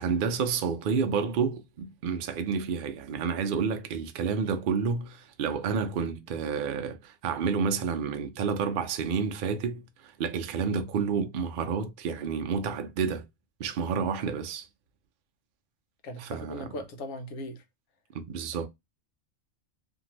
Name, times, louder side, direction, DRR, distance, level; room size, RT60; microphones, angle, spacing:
voice 1, 0.0-13.2 13.6-14.7 16.2-16.7 18.1-18.7, right 6 dB, 65° right, 0.5 m, -30 dB
voice 2, 16.0-17.6, left 1 dB, 90° left, 1.1 m, -39 dB
2.8 x 2.6 x 2.9 m
omnidirectional pair, 1.4 m